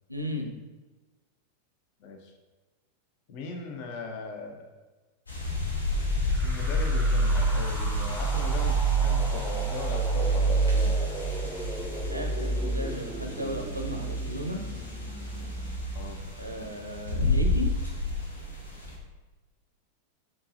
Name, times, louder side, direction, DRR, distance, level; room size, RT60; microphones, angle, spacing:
voice 1, 0.1-0.5 12.1-14.6 16.4-17.7, left 1 dB, 90° right, 2 dB, 0.5 m, -35 dB
voice 2, 2.0-2.3 3.3-4.7 6.4-11.0 15.9-16.2, left 3 dB, 45° left, 2 dB, 0.5 m, -39 dB
sound 1, 5.3-18.9, left 2 dB, 75° left, 0.8 m, -33 dB
sound 2, 5.9-17.2, right 3 dB, 10° right, 0.5 m, -28 dB
4.5 x 2.8 x 2.7 m, 1.2 s
figure-of-eight pair, 90°, 0 cm